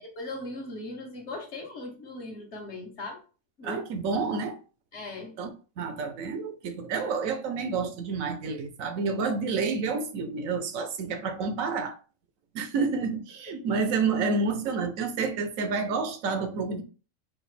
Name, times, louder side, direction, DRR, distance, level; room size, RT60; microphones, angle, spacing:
voice 1, 0.0-3.2 3.6-3.8 4.1-4.2 4.9-5.4, left 2 dB, 55° left, 1.3 m, -39 dB
voice 2, 3.6-4.6 5.4-12.0 12.5-16.8, right 4 dB, 80° right, 1.1 m, -29 dB
4.8 x 2.4 x 3.2 m
omnidirectional pair, 1.4 m